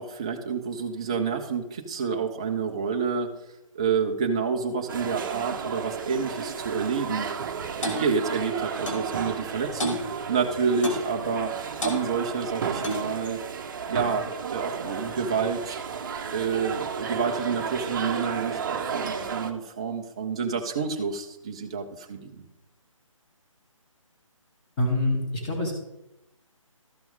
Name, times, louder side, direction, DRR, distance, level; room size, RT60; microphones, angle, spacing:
voice 1, 0.0-3.3 3.8-7.3 7.8-10.0 10.3-11.5 11.8-13.4 13.9-15.8 16.3-22.5, right 5 dB, 10° right, 3 dB, 0.3 m, -28 dB
sound 1, 4.9-19.5, right 6 dB, 35° right, 0.7 m, -33 dB
Clock, 7.8-8.0 8.9-9.1 9.8-10.0 10.8-11.1 11.8-12.0 12.8-13.1, left 1 dB, 65° left, 2.2 m, -30 dB
voice 2, 24.8-25.7, left 1 dB, 20° left, -2 dB, 2.4 m, -25 dB
13.0 x 5.9 x 3.6 m, 0.92 s
figure-of-eight pair, 155°, 17 cm